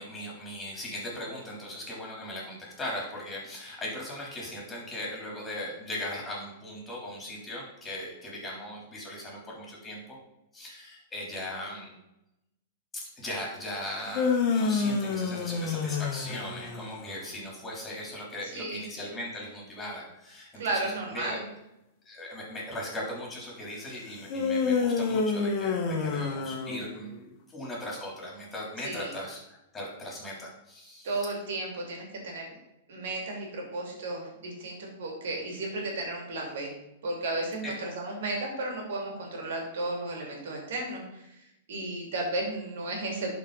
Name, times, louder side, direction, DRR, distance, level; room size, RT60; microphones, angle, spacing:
voice 1, 0.0-10.0 10.5-11.9 12.9-21.4 22.1-27.1 27.5-31.1 37.6-37.7, left 1 dB, 15° left, -3 dB, 3.5 m, -38 dB
sound 1, 13.9-17.1 24.3-27.2, left 4 dB, 40° left, 1.5 m, -28 dB
voice 2, 18.5-18.9 20.5-21.4 28.8-29.1 31.0-32.6 32.9-36.7 37.0-41.3 41.7-43.3, right 2 dB, 65° right, 0 dB, 2.8 m, -34 dB
11.0 x 4.6 x 4.1 m, 0.87 s
figure-of-eight pair, 105°, 0 cm